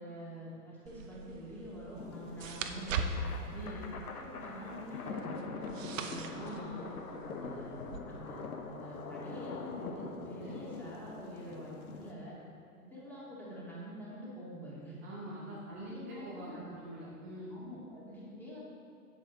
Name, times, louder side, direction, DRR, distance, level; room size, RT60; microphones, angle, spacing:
voice 1, 0.0-3.3 4.2-6.4 7.1-7.8 8.1-12.3 12.8-15.0 15.7-16.8 17.5-18.6, equal, 5° left, -8 dB, 2.0 m, -46 dB
sound 1, 0.9-8.0, right 4 dB, 60° right, 0.7 m, -41 dB
sound 2, 1.9-12.1, left 4 dB, 75° left, 1.0 m, -44 dB
voice 2, 3.5-3.8 6.3-6.9 10.4-10.6 15.0-17.6, right 1 dB, 10° right, -8 dB, 0.3 m, -44 dB
7.9 x 7.3 x 3.9 m, 2.6 s
hypercardioid pair, 125°, 44 cm